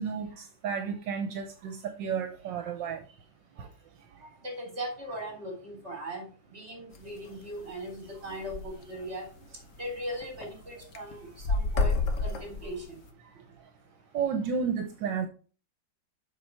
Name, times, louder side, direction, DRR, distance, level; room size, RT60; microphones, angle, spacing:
voice 1, 0.0-3.0 3.6-3.7 4.1-4.3 13.2-13.3 14.1-15.3, right 6 dB, 75° right, 6 dB, 1.5 m, -32 dB
voice 2, 4.4-9.3 9.8-13.0, equal, 35° right, 0 dB, 3.8 m, -39 dB
sound 1, 6.9-7.2 7.6-7.7 7.9-8.0 8.3-8.7 9.3-9.4 9.7-10.5 10.8-13.1, left 3 dB, 50° left, 1.1 m, -29 dB
7.2 x 5.9 x 4.4 m, 0.38 s
omnidirectional pair, 2.1 m